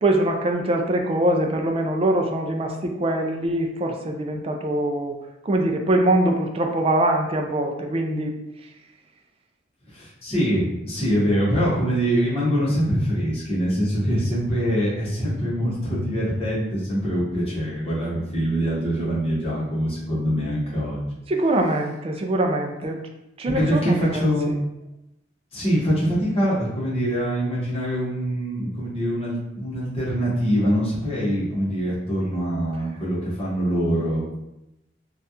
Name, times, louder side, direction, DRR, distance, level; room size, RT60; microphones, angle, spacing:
voice 1, 0.0-5.2 5.4-8.4 21.3-23.0 23.4-24.5, right 1 dB, 30° right, 3 dB, 0.4 m, -23 dB
voice 2, 9.9-21.0 23.4-24.5 25.5-34.3, equal, 35° left, -8 dB, 1.2 m, -24 dB
3.2 x 2.4 x 2.8 m, 0.90 s
head